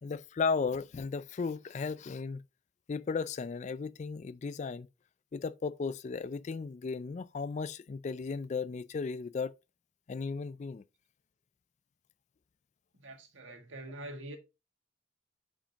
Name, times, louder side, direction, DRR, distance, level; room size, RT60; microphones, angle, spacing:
voice 1, 0.0-2.4 2.9-4.9 5.3-9.5 10.1-10.8, left 4 dB, 35° left, 0.3 m, -35 dB
voice 2, 12.9-14.4, right 1 dB, 90° right, 1.8 m, -45 dB
8.7 x 5.1 x 2.9 m
head